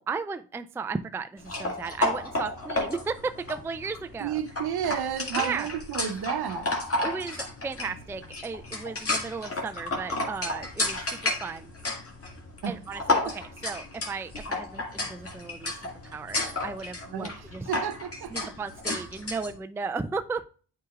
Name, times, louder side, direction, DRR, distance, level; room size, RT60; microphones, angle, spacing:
voice 1, 0.0-4.4 5.4-5.7 7.0-11.7 12.7-15.8 16.0-17.7 18.3-20.4, right 4 dB, 5° right, 0.4 m, -35 dB
sound 1, 1.4-19.5, left 2 dB, 30° left, 2.0 m, -32 dB
voice 2, 4.2-6.8 12.6-12.7 13.1-13.4 17.1-18.5, right 8 dB, 60° right, 0.9 m, -32 dB
8.3 x 4.8 x 2.4 m
supercardioid pair, 60°, 43 cm